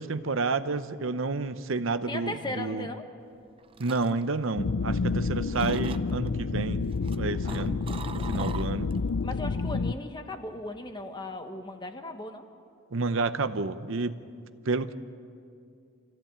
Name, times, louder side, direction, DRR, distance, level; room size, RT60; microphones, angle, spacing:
voice 1, 0.0-2.9 3.8-6.9 7.1-7.8 8.1-8.9 12.9-14.2 14.6-14.9, right 3 dB, 65° right, 11 dB, 0.7 m, -30 dB
voice 2, 2.1-3.1 7.4-7.7 9.2-12.5, left 2 dB, 20° left, 6 dB, 1.2 m, -37 dB
sound 1, 3.3-5.2 5.5-6.3 6.8-9.1 9.4-9.8, right 5 dB, 25° right, 0.5 m, -43 dB
sound 2, 4.5-9.9, left 4 dB, 90° left, 0.5 m, -29 dB
26.0 x 15.0 x 8.8 m, 2.4 s
head